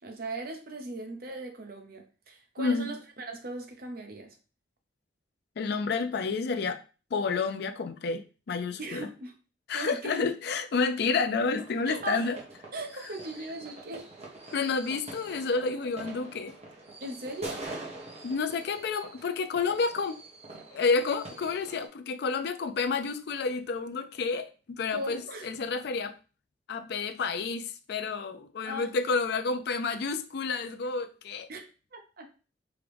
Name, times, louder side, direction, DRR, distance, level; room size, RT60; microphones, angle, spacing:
voice 1, 0.0-4.4 8.8-9.3 9.7-10.2 11.8-12.3 12.7-14.1 17.0-17.9 24.9-25.5 28.6-28.9 31.5-31.6 31.9-32.3, right 2 dB, 55° right, 0.8 m, -39 dB
voice 2, 2.6-2.9 5.6-6.8 7.1-9.1 9.7-12.4 14.5-16.6 18.2-20.2 20.7-26.1 26.7-31.5, left 4 dB, 65° left, 0.4 m, -30 dB
sound 1, 11.5-21.9, right 2 dB, 40° right, 1.2 m, -45 dB
4.9 x 2.9 x 3.4 m
head